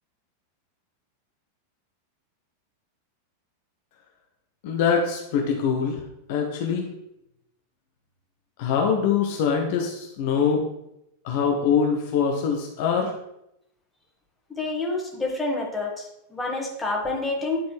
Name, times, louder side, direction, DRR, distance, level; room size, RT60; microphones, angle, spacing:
voice 1, 4.6-6.0 6.3-6.9 8.6-10.6 11.2-13.1, left 6 dB, 50° left, 1 dB, 0.8 m, -23 dB
voice 2, 14.6-17.6, left 3 dB, 10° left, -1 dB, 1.6 m, -28 dB
9.5 x 4.1 x 3.2 m, 0.83 s
figure-of-eight pair, 90°, 0 cm